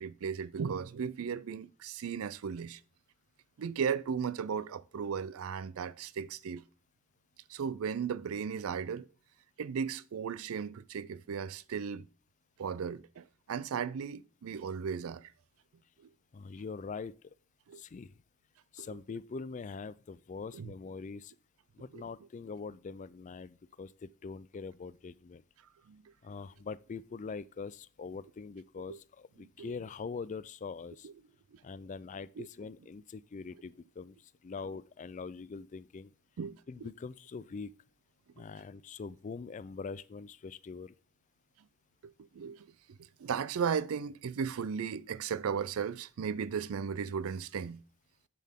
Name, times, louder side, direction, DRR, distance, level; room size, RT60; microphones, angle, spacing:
voice 1, 0.0-2.8 3.6-6.6 7.5-9.1 9.6-12.1 12.6-15.3 17.7-17.8 18.8-19.0 20.5-20.7 21.9-22.0 25.9-26.1 28.9-29.0 29.4-29.7 31.0-31.1 31.5-31.6 32.4-32.5 36.4-36.9 38.4-38.5 42.0-47.8, right 6 dB, 70° right, 0.4 m, -36 dB
voice 2, 16.3-17.1 17.8-18.1 18.7-21.3 21.8-25.4 26.2-31.1 31.6-36.1 36.7-37.7 38.4-40.9, left 5 dB, 35° left, 0.3 m, -43 dB
7.6 x 7.3 x 3.6 m
head